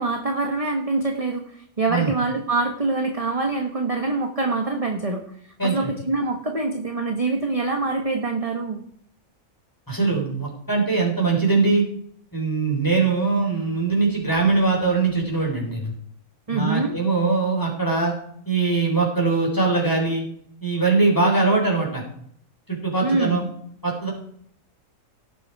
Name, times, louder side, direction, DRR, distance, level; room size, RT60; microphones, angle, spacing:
voice 1, 0.0-5.2 5.6-8.8 16.5-17.0 23.0-23.4, right 3 dB, 25° right, 3 dB, 1.2 m, -25 dB
voice 2, 5.6-5.9 9.9-11.8 12.3-15.9 16.5-18.1 18.5-20.2 20.6-22.0 22.7-23.5 23.8-24.1, right 4 dB, 15° left, -1 dB, 4.0 m, -21 dB
17.5 x 7.0 x 4.7 m, 0.66 s
omnidirectional pair, 1.5 m